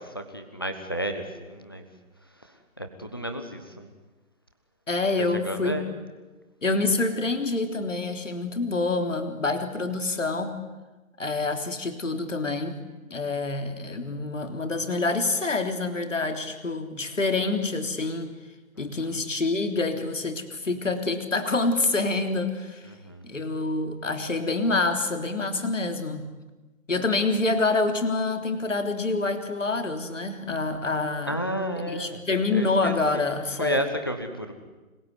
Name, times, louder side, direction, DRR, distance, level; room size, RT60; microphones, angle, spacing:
voice 1, 0.0-1.8 2.4-3.9 5.2-5.8 18.8-19.2 22.8-23.3 31.2-32.2 32.5-34.5, right 1 dB, 15° left, 6 dB, 1.2 m, -32 dB
voice 2, 4.9-5.8 6.6-10.5 11.2-12.8 13.1-18.3 18.8-22.8 23.2-26.3 26.9-31.4 31.9-33.9, left 3 dB, 60° left, 6 dB, 3.6 m, -27 dB
26.5 x 21.0 x 9.8 m, 1.2 s
figure-of-eight pair, 180°, 43 cm